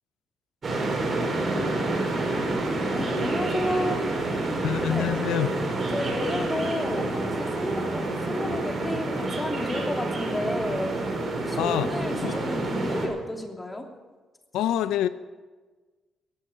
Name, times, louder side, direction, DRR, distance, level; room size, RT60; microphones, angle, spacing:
sound 1, 0.6-13.1, right 2 dB, 45° right, 5.6 m, -28 dB
voice 1, 2.9-4.0 4.9-5.1 5.9-10.9 11.4-13.9, left 1 dB, 15° left, 2 dB, 2.9 m, -31 dB
voice 2, 4.6-5.5 11.6-11.9 12.2-12.4 14.5-15.1, left 11 dB, 90° left, 12 dB, 0.5 m, -26 dB
16.0 x 8.7 x 9.2 m, 1.3 s
cardioid pair, 90°, 0 cm